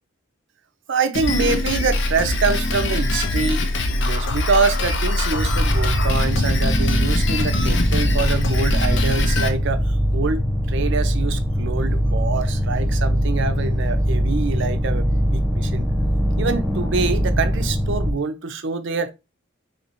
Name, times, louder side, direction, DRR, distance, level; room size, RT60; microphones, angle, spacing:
voice 1, 0.9-3.6 4.0-10.4 10.7-15.9 16.4-19.1, right 4 dB, 60° right, 0.5 m, -25 dB
Drum kit, 1.1-9.5, left 2 dB, 60° left, 0.6 m, -22 dB
sound 1, 5.4-18.1, equal, 5° right, 1.2 m, -22 dB
2.9 x 2.8 x 4.2 m
head